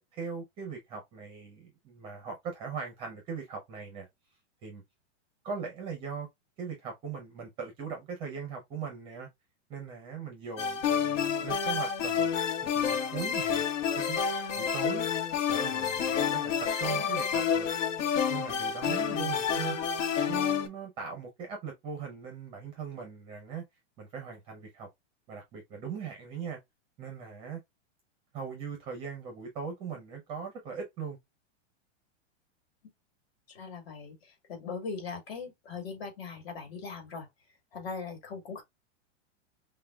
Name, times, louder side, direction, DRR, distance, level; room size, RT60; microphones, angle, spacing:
voice 1, 0.0-4.1 4.6-4.8 5.4-6.3 6.6-9.3 9.7-12.3 12.6-13.6 14.0-14.2 14.6-15.1 15.5-17.7 18.3-19.8 20.3-23.6 24.0-24.9 25.3-26.6 27.0-27.6 28.3-31.2, right 6 dB, 15° right, 0.5 m, -40 dB
sound 1, 10.6-20.7, left 7 dB, 85° left, 1.0 m, -29 dB
voice 2, 18.8-19.2 33.5-37.3 37.7-38.6, left 5 dB, 55° left, 2.2 m, -40 dB
5.6 x 2.2 x 2.2 m
supercardioid pair, 170°, 36 cm